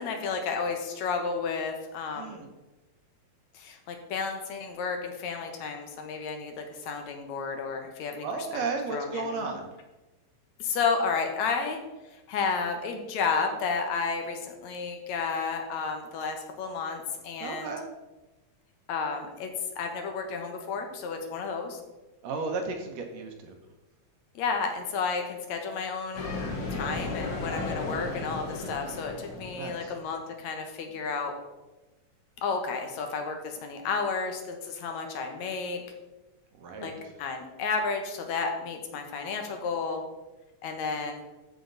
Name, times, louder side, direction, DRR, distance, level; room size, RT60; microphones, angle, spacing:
voice 1, 0.0-2.4 3.5-8.6 8.9-9.4 10.6-11.8 12.1-17.7 18.9-19.5 19.8-21.8 24.4-26.3 26.7-31.3 32.4-35.8 36.8-36.9 37.2-40.0 40.6-41.2, left 5 dB, 75° left, 4 dB, 2.3 m, -32 dB
voice 2, 2.2-2.5 8.2-9.7 17.4-17.9 22.2-23.5 29.5-29.8 36.6-36.9, right 3 dB, 70° right, 4 dB, 2.1 m, -33 dB
sound 1, 26.1-30.1, left 3 dB, 55° left, 2.5 m, -35 dB
13.5 x 5.2 x 3.9 m, 1.1 s
omnidirectional pair, 3.3 m